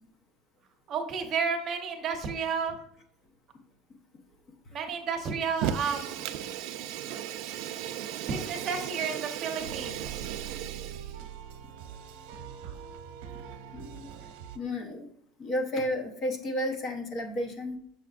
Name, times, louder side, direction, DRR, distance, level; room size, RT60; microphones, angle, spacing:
voice 1, 0.9-2.8 4.7-6.4 8.2-10.3, right 5 dB, 30° right, 4 dB, 0.9 m, -32 dB
Fire, 5.5-11.2, right 10 dB, 60° right, 0.4 m, -36 dB
sound 1, 9.6-14.6, right 8 dB, 80° right, 0.8 m, -43 dB
voice 2, 13.7-14.1 14.5-15.1 15.4-17.8, left 1 dB, 30° left, 4 dB, 0.9 m, -32 dB
6.8 x 5.6 x 2.5 m, 0.65 s
cardioid pair, 170°, 0 cm